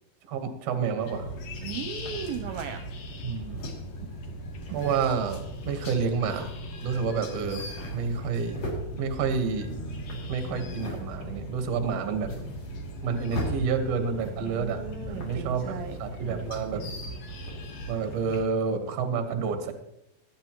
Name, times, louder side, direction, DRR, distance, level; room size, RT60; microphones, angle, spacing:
voice 1, 0.3-1.3 3.2-3.6 4.7-6.5 6.8-8.6 9.0-9.7 10.3-12.3 13.0-14.8 15.1-16.9 17.9-19.7, right 5 dB, 60° right, 6 dB, 1.7 m, -29 dB
sound 1, 1.0-18.4, equal, 65° left, 1.7 m, -39 dB
voice 2, 1.6-2.8 14.4-16.4, right 7 dB, 75° right, 6 dB, 2.3 m, -37 dB
sound 2, 1.9-2.8 3.5-4.0 4.6-5.0 5.5-6.0 6.3-6.6 6.9-7.0 7.3-8.8 9.4-11.1 11.5-11.6 12.0-13.0 13.3-13.5 14.1-14.6 15.1-15.5 15.8-16.7 17.1-17.7, equal, 45° left, 3.6 m, -41 dB
sound 3, 7.8-8.3 8.5-8.6 8.9-9.4 9.7-10.9 11.2-12.7 13.0-17.6, left 1 dB, 80° left, 3.9 m, -45 dB
21.0 x 9.3 x 3.0 m, 0.82 s
omnidirectional pair, 4.7 m